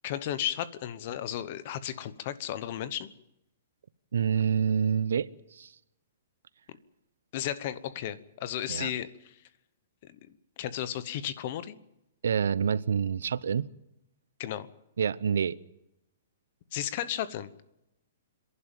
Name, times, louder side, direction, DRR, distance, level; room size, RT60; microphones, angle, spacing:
voice 1, 0.0-3.1 6.7-6.8 7.3-9.4 10.0-10.2 10.6-11.8 14.4-14.7 16.7-17.5, left 11 dB, 35° left, 1.0 m, -34 dB
voice 2, 4.1-5.7 8.7-8.9 12.2-13.7 15.0-15.6, right 7 dB, 85° right, 0.7 m, -27 dB
29.0 x 11.5 x 9.0 m
hypercardioid pair, 175°, 0 cm